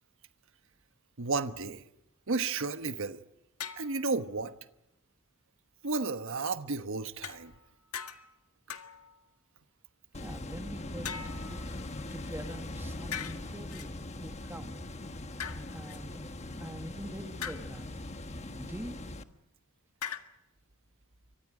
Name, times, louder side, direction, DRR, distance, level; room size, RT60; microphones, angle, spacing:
voice 1, 1.2-1.8 2.3-3.2 3.8-4.5 5.8-7.5, right 4 dB, 65° right, 1.2 m, -32 dB
sound 1, 3.6-4.0 7.2-7.7 7.9-8.4 8.7-9.2 11.0-12.1 13.1-13.9 15.4-16.0 17.4-17.8 20.0-20.2, left 8 dB, 90° left, 1.7 m, -41 dB
sound 2, 10.1-19.2, left 1 dB, 30° left, 1.4 m, -41 dB
voice 2, 10.2-11.8 12.1-14.8 15.7-17.9 18.5-19.0, right 1 dB, 10° right, 1.9 m, -45 dB
29.0 x 25.0 x 5.0 m
head